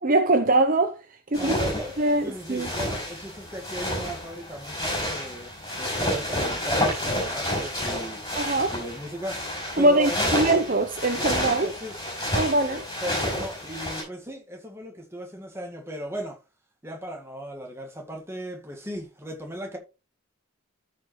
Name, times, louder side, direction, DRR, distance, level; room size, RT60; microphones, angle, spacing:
voice 1, 0.0-1.0 1.3-1.6 2.0-2.7 8.4-8.8 9.8-11.7 12.3-12.8, right 2 dB, 40° right, 0.7 m, -22 dB
sound 1, 1.3-14.0, equal, 20° left, 4.8 m, -30 dB
voice 2, 1.3-8.2 8.7-10.6 11.1-11.9 12.6-16.4 16.8-19.8, equal, 10° right, 1.9 m, -37 dB
13.5 x 5.1 x 3.2 m
head